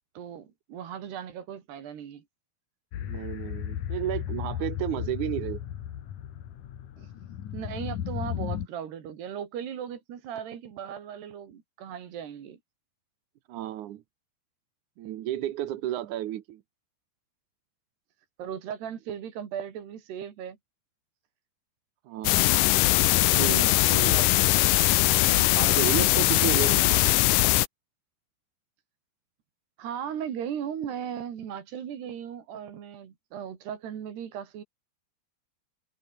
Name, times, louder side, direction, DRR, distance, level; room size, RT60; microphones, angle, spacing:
voice 1, 0.1-2.2 7.0-7.1 7.5-12.6 18.4-20.6 23.1-24.7 26.2-26.6 29.8-34.6, right 9 dB, 80° right, 4.9 m, -37 dB
sound 1, 2.9-8.7, left 10 dB, 55° left, 2.9 m, -35 dB
voice 2, 3.0-5.6 13.5-14.0 15.0-16.6 22.1-22.6 23.3-24.4 25.3-27.2, right 13 dB, 65° right, 2.1 m, -33 dB
sound 2, 22.2-27.7, left 17 dB, 85° left, 1.9 m, -21 dB
omnidirectional pair, 4.6 m